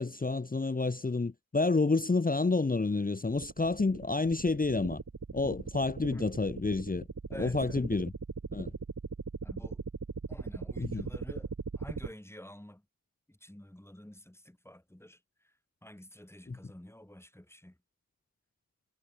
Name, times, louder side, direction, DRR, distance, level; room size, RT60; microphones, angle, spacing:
voice 1, 0.0-5.0 5.3-7.0 7.4-8.1 8.5-8.7 10.8-11.1 16.5-16.6, left 3 dB, 25° left, 0.8 m, -29 dB
sound 1, 3.3-12.1, right 4 dB, 50° right, 3.2 m, -40 dB
voice 2, 7.3-7.8 9.4-9.8 10.3-11.5 11.7-12.8 13.3-15.5 15.8-17.8, left 1 dB, 5° left, 2.8 m, -50 dB
cardioid pair, 60°, 37 cm